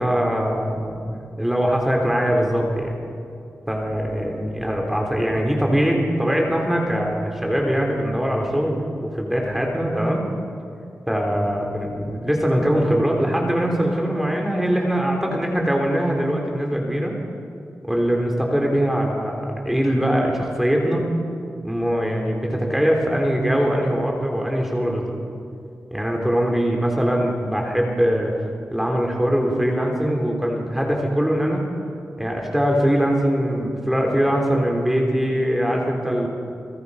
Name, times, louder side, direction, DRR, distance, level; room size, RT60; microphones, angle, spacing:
voice 1, 0.0-2.9 3.7-10.3 11.1-17.1 17.8-21.1 21.6-25.2 25.9-28.3 28.7-31.7 32.2-36.3, equal, 5° right, 0 dB, 3.5 m, -22 dB
29.5 x 21.5 x 5.6 m, 2.4 s
wide cardioid pair, 175°, 5 cm